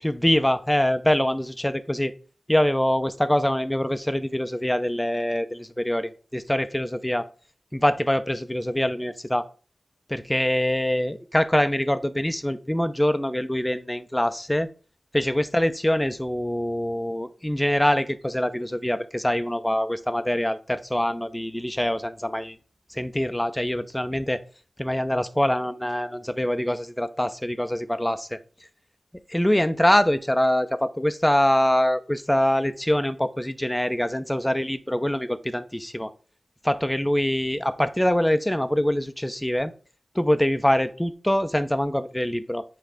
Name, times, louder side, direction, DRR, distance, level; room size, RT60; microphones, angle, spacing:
voice 1, 0.0-2.1 2.5-7.3 7.7-9.5 10.1-14.7 15.1-22.6 22.9-24.4 24.8-28.4 29.3-36.1 36.6-39.7 40.1-42.6, left 1 dB, 10° left, 11 dB, 0.7 m, -24 dB
8.2 x 3.5 x 5.0 m, 0.38 s
cardioid pair, 45°, 0 cm